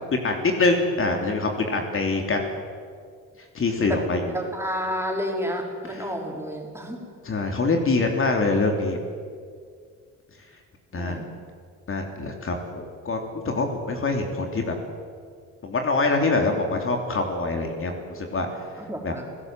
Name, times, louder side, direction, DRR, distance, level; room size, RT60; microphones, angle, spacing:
voice 1, 0.1-2.4 3.5-4.2 7.2-9.0 10.9-11.2 11.9-14.7 15.6-18.5 19.0-19.1, left 3 dB, 45° left, 3 dB, 3.3 m, -24 dB
voice 2, 3.8-7.0 10.9-11.3 18.8-19.3, equal, 10° right, 0 dB, 5.1 m, -30 dB
28.5 x 16.5 x 7.7 m, 2.1 s
cardioid pair, 90°, 30 cm